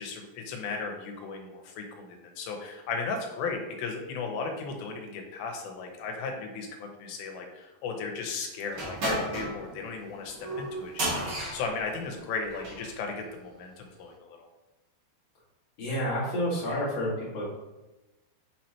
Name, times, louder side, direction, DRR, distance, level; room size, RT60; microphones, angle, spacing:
voice 1, 0.0-14.5, left 4 dB, 85° left, 2 dB, 3.1 m, -36 dB
sound 1, 8.7-12.9, right 1 dB, 50° right, 1.3 m, -33 dB
voice 2, 15.8-17.4, equal, 45° left, -7 dB, 2.3 m, -29 dB
8.2 x 4.4 x 2.9 m, 1.1 s
omnidirectional pair, 4.9 m